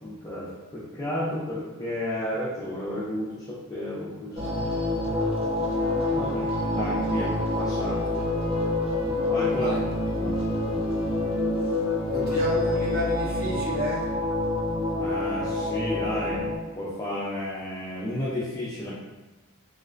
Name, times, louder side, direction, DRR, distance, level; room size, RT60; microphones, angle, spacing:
voice 1, 0.0-4.4 6.1-8.2 9.3-9.7 10.2-10.4 15.0-18.9, left 1 dB, 15° left, -9 dB, 0.5 m, -32 dB
sound 1, 4.3-16.6, left 2 dB, 30° right, 0.6 m, -27 dB
Wind instrument woodwind instrument, 5.6-13.6, left 3 dB, 75° left, 0.6 m, -44 dB
voice 2, 12.1-14.1, equal, 50° right, -6 dB, 1.0 m, -30 dB
3.1 x 2.9 x 2.5 m, 1.1 s
head